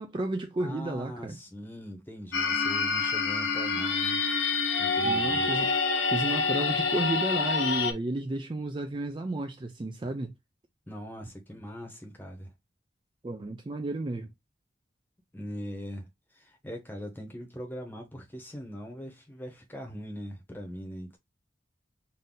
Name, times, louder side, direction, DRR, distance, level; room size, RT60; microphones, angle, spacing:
voice 1, 0.0-1.4 5.0-5.7 6.1-10.3 13.2-14.3, right 2 dB, 25° right, 0.4 m, -32 dB
voice 2, 0.6-4.2 4.8-5.5 10.9-12.5 15.3-21.2, equal, 10° left, 0.9 m, -41 dB
sound 1, 2.3-7.9, left 4 dB, 75° left, 0.7 m, -27 dB
3.9 x 2.6 x 3.7 m
head